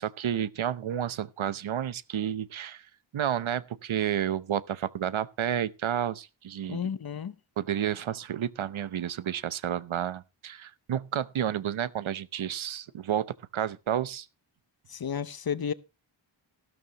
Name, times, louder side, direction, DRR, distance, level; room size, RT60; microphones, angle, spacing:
voice 1, 0.0-2.8 3.1-6.9 7.6-14.3, right 10 dB, 90° right, 0.8 m, -31 dB
voice 2, 6.7-7.3 14.9-15.7, left 7 dB, 50° left, 0.8 m, -32 dB
14.0 x 12.5 x 2.9 m
wide cardioid pair, 95°, 46 cm